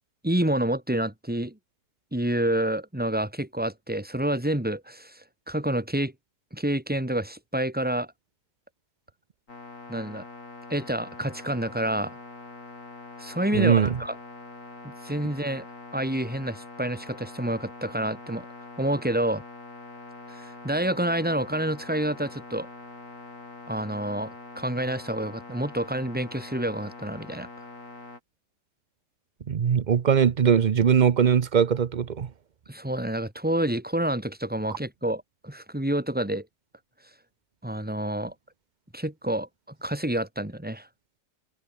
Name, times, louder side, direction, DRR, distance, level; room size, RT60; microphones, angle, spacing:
voice 1, 0.2-1.6 2.1-6.1 6.5-8.1 9.9-10.2 10.7-12.2 13.2-14.2 15.0-15.6 15.9-18.5 18.8-19.4 20.3-22.7 23.7-27.5 32.7-36.5 37.6-38.3 38.9-40.9, right 1 dB, 5° right, 3.0 m, -28 dB
sound 1, 9.5-28.2, left 3 dB, 50° left, 3.8 m, -44 dB
voice 2, 13.5-14.0 29.5-32.3, right 7 dB, 65° right, 0.4 m, -21 dB
omnidirectional pair, 1.8 m